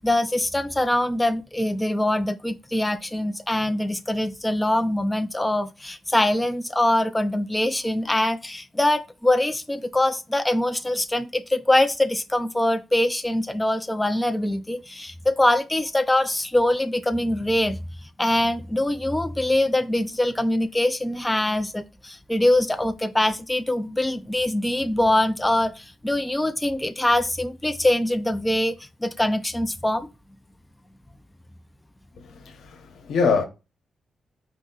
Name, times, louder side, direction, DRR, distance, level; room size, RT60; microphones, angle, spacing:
voice 1, 0.0-17.8 18.2-30.1, left 1 dB, 10° left, 0.4 m, -23 dB
voice 2, 32.2-33.4, left 5 dB, 85° left, 0.9 m, -24 dB
4.8 x 2.8 x 3.9 m
wide cardioid pair, 130°, 0 cm